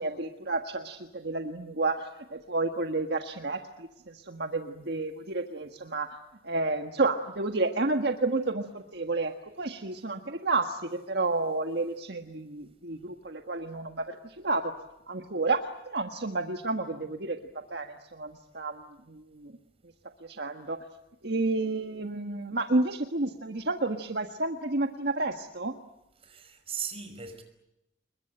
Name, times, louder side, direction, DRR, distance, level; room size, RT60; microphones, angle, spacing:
voice 1, 0.0-6.1 6.4-14.7 15.1-15.6 15.9-17.4 17.7-19.5 20.2-20.8 21.2-25.7, right 3 dB, 65° right, 1.6 m, -31 dB
voice 2, 26.2-27.4, right 7 dB, 35° right, 5.3 m, -38 dB
27.5 x 22.5 x 8.9 m
head